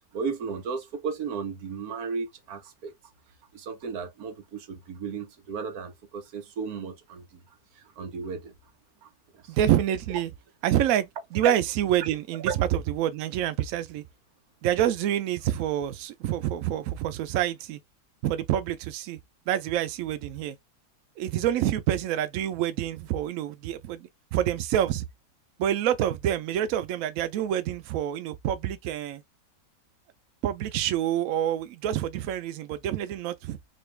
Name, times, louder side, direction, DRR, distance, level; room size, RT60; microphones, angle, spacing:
voice 1, 0.1-2.9 3.5-7.4 7.8-8.5 9.0-9.5 11.4-11.5 12.4-12.6, right 5 dB, 60° right, 1.2 m, -34 dB
voice 2, 9.5-10.3 10.6-14.0 14.6-17.8 18.2-19.2 19.5-20.6 21.2-25.1 25.6-29.2 30.4-33.6, right 11 dB, 80° right, 0.7 m, -27 dB
3.9 x 2.3 x 3.2 m
omnidirectional pair, 2.0 m